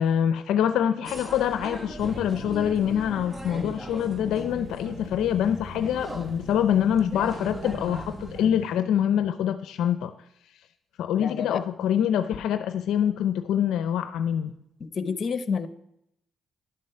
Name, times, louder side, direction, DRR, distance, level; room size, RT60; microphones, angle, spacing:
voice 1, 0.0-10.1 11.0-14.5, left 9 dB, 80° left, 10 dB, 0.5 m, -25 dB
sound 1, 1.0-8.5, equal, 15° right, 1.1 m, -40 dB
sound 2, 2.0-8.8, equal, 45° right, 2.7 m, -41 dB
voice 2, 11.2-11.6 14.8-15.7, left 5 dB, 45° left, 11 dB, 0.9 m, -29 dB
11.5 x 7.5 x 5.7 m, 0.79 s
cardioid pair, 90°, 0 cm